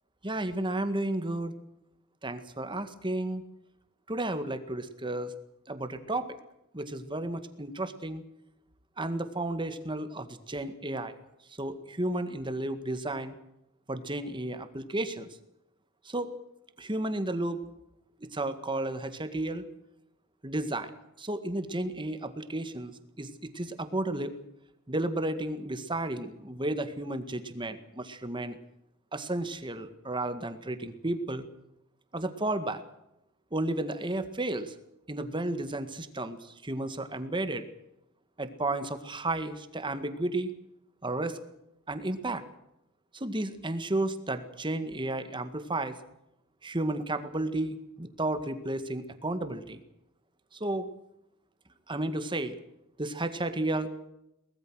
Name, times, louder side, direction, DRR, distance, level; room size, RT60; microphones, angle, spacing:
voice 1, 0.2-1.5 2.2-3.4 4.1-5.3 5.7-6.4 6.7-8.2 9.0-11.1 11.6-13.3 13.9-15.3 16.1-16.3 16.8-17.6 18.2-19.6 20.4-20.9 21.2-24.3 24.9-28.6 29.1-31.5 32.1-32.8 33.5-34.7 35.1-37.6 38.4-40.5 41.0-41.4 41.9-42.4 43.1-46.0 46.6-49.8 50.5-50.9 51.9-52.5 53.0-53.9, right 2 dB, 20° right, 10 dB, 1.9 m, -32 dB
23.0 x 20.0 x 6.3 m, 0.85 s
head